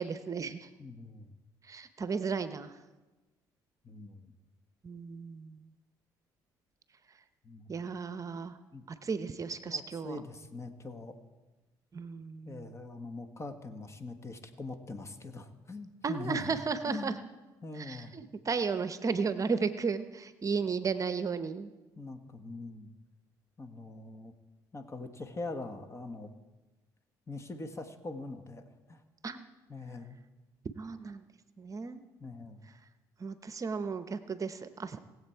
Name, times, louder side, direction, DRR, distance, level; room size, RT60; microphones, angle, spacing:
voice 1, 0.0-0.7 1.6-2.8 4.8-5.7 7.7-8.6 8.9-10.2 11.9-12.8 16.0-17.2 17.8-21.7 29.2-29.4 30.8-31.2 31.6-32.0 33.2-35.0, right 5 dB, 35° right, 11 dB, 0.8 m, -34 dB
voice 2, 0.8-1.3 3.8-4.3 7.4-7.7 8.7-8.8 9.6-11.1 12.5-16.5 16.9-17.2 17.6-18.1 22.0-22.9 23.6-24.3 24.7-26.3 27.3-28.6 28.9-29.0 29.7-30.2 32.2-32.6, left 3 dB, 30° left, 7 dB, 1.5 m, -42 dB
20.0 x 7.8 x 4.6 m, 1.2 s
supercardioid pair, 65°, 9 cm